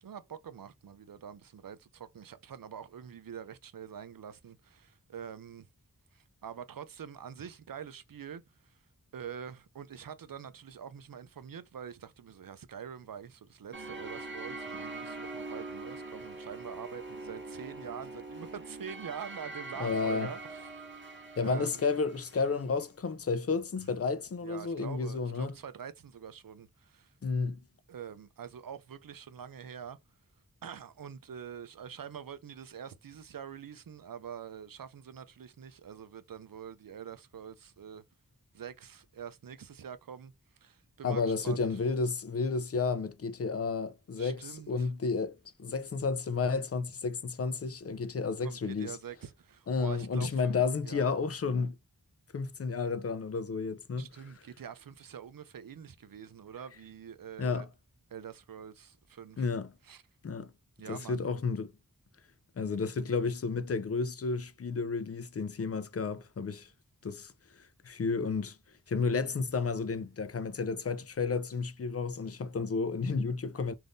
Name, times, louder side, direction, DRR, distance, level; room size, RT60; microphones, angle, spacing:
voice 1, 0.0-5.7 6.1-8.8 9.1-21.1 21.4-21.9 23.8-23.9 24.4-27.1 27.9-30.0 30.6-38.0 38.5-40.3 40.6-41.7 44.2-44.9 48.4-50.5 50.8-51.1 54.0-57.7 58.1-59.5 59.8-60.0 60.8-61.3, right 8 dB, 70° right, 0.5 m, -45 dB
sound 1, 13.7-22.5, right 3 dB, 30° right, 0.9 m, -43 dB
voice 2, 19.8-20.3 21.4-25.5 27.2-27.6 41.0-49.0 49.7-51.7 52.3-54.1 57.4-57.7 59.4-59.7 60.2-60.5 60.9-61.7 62.6-66.7 67.0-68.6 68.9-73.7, left 4 dB, 45° left, 0.4 m, -32 dB
2.6 x 2.5 x 3.5 m
wide cardioid pair, 40°, 36 cm